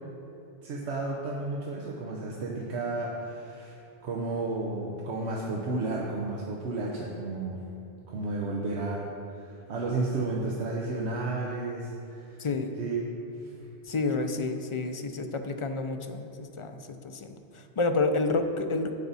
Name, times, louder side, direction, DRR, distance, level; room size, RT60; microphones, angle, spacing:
voice 1, 0.6-3.8 4.0-7.6 8.1-12.5 12.8-13.1 13.4-13.5, right 2 dB, 90° right, -2 dB, 1.1 m, -32 dB
voice 2, 12.4-12.8 13.9-18.9, left 3 dB, 40° left, 7 dB, 0.5 m, -30 dB
10.5 x 8.1 x 4.1 m, 2.8 s
omnidirectional pair, 1.1 m